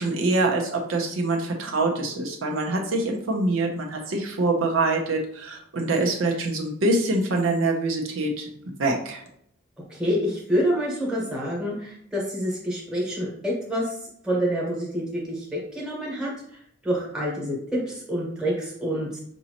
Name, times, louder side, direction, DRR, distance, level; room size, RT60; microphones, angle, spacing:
voice 1, 0.0-9.2, right 2 dB, 75° right, 1 dB, 0.8 m, -25 dB
voice 2, 9.9-13.9 14.2-16.3 16.8-19.2, equal, 5° right, -3 dB, 1.2 m, -27 dB
5.3 x 2.7 x 2.9 m, 0.69 s
head